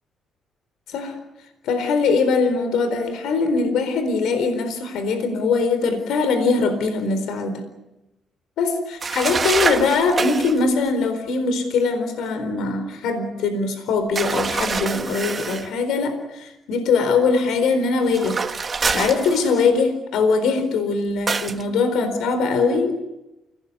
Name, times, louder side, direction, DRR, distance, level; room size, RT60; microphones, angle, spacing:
voice 1, 1.6-7.6 8.6-18.4 18.9-23.1, left 4 dB, 85° left, 9 dB, 4.2 m, -21 dB
sound 1, 9.0-10.6 14.1-15.7 18.1-19.8 21.3-21.6, right 5 dB, 35° right, 1.8 m, -25 dB
29.5 x 19.0 x 9.7 m, 0.95 s
cardioid pair, 90°, 0 cm